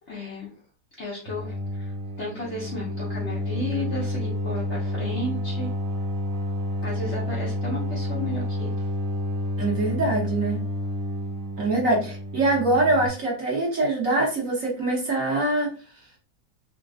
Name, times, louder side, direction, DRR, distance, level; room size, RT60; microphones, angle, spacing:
voice 1, 0.1-0.5 1.0-5.7 6.8-8.7, left 1 dB, 55° left, -4 dB, 0.8 m, -33 dB
sound 1, 1.3-13.1, left 1 dB, 70° right, 0.5 m, -30 dB
voice 2, 9.6-10.6 11.6-15.7, right 2 dB, 55° right, -3 dB, 1.2 m, -23 dB
3.3 x 2.8 x 2.4 m, 0.38 s
omnidirectional pair, 1.9 m